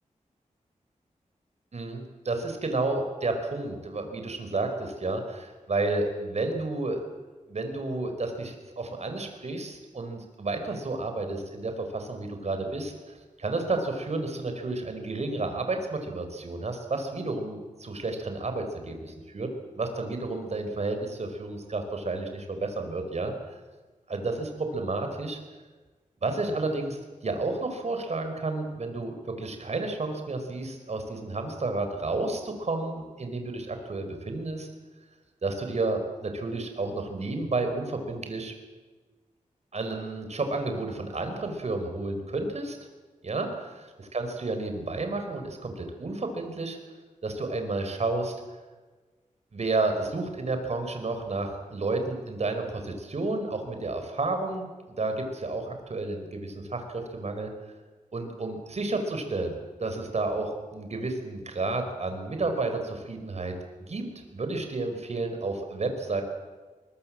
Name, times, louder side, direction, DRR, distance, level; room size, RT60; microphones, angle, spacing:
voice 1, 1.7-7.0 7.5-19.5 19.7-23.6 24.1-25.4 26.2-34.7 35.4-38.5 39.7-42.8 43.2-46.8 47.2-48.4 49.5-57.5 58.1-63.6 63.9-66.2, right 3 dB, 55° right, 6 dB, 4.6 m, -31 dB
23.5 x 21.5 x 7.5 m, 1.3 s
wide cardioid pair, 110°, 13 cm